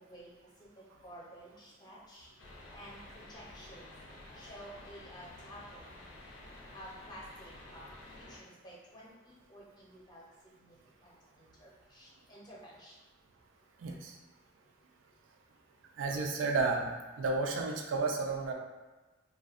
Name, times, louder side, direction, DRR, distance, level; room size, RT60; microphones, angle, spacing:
voice 1, 1.0-2.3 2.7-4.0 4.3-5.8 6.7-10.2 10.6-10.7 11.0-12.9, equal, 20° left, -5 dB, 0.6 m, -52 dB
sound 1, 2.4-8.4, left 1 dB, 80° left, 0.5 m, -51 dB
voice 2, 13.8-14.2 16.0-16.9 17.2-18.5, right 3 dB, 80° right, 1 dB, 0.4 m, -32 dB
2.5 x 2.2 x 2.4 m, 1.2 s
head